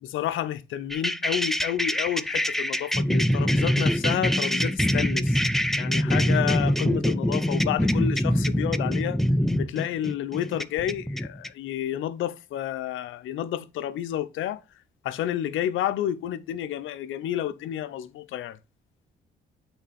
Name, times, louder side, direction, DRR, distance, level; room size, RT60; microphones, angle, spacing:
voice 1, 0.1-5.4 5.8-9.2 9.6-14.6 15.0-18.6, left 11 dB, 80° left, 0.7 m, -30 dB
sound 1, 0.9-11.5, equal, ahead, 0.5 m, -24 dB
8.0 x 4.0 x 4.1 m
cardioid pair, 90°, 20 cm